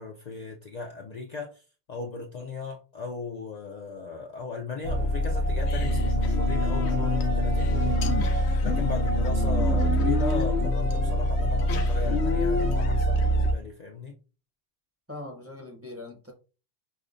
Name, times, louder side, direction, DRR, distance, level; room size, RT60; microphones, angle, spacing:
voice 1, 0.0-14.2, left 4 dB, 55° left, 0.5 m, -38 dB
sound 1, 4.8-13.5, left 1 dB, 85° left, 0.9 m, -24 dB
voice 2, 15.1-16.3, left 2 dB, 15° right, 0.7 m, -41 dB
5.3 x 2.1 x 2.4 m
omnidirectional pair, 1.1 m